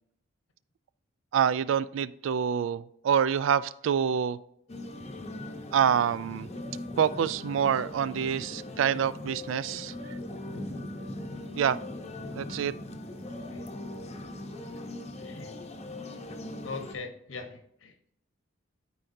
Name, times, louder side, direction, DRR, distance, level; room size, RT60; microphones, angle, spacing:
voice 1, 1.3-4.4 5.7-6.5 7.0-9.9 11.6-11.8 12.4-12.7, right 8 dB, 75° right, 17 dB, 0.3 m, -26 dB
sound 1, 4.7-16.9, left 1 dB, 35° left, 0.7 m, -40 dB
voice 2, 15.2-15.5 16.6-17.9, left 4 dB, 80° left, 6 dB, 1.1 m, -40 dB
12.5 x 4.6 x 2.7 m, 0.76 s
head